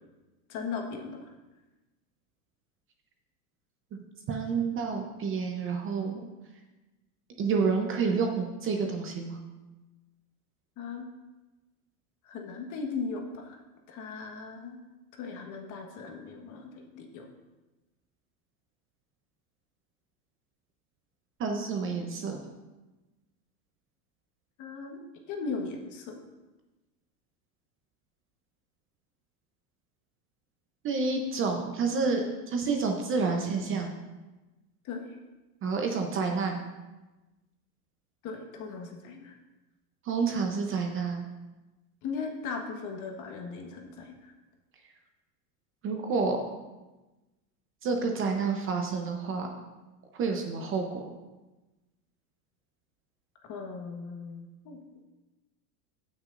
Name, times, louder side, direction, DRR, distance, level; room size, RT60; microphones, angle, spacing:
voice 1, 0.5-1.3 10.8-11.1 12.2-13.6 13.9-14.8 15.2-17.2 24.6-25.0 25.3-26.2 34.8-35.2 38.2-39.3 42.0-44.3 53.5-54.8, left 4 dB, 40° left, 2 dB, 1.5 m, -38 dB
voice 2, 3.9-6.3 7.4-9.4 21.4-22.4 30.8-33.9 35.6-36.6 40.1-41.3 45.8-46.5 47.8-49.5 50.1-51.0, right 4 dB, 25° right, 3 dB, 0.8 m, -29 dB
18.5 x 6.3 x 2.6 m, 1.1 s
supercardioid pair, 135°, 48 cm